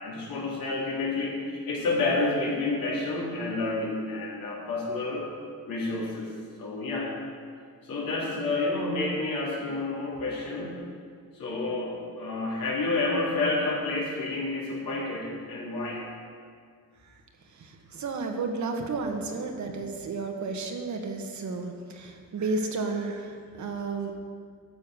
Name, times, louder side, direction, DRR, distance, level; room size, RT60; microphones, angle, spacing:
voice 1, 0.0-5.3 5.7-6.3 6.6-7.1 7.8-10.7 11.3-16.0, left 2 dB, 80° left, -5 dB, 3.6 m, -29 dB
voice 2, 17.6-24.1, right 3 dB, 55° right, 4 dB, 1.5 m, -32 dB
12.5 x 6.8 x 6.4 m, 2.1 s
cardioid pair, 95°, 34 cm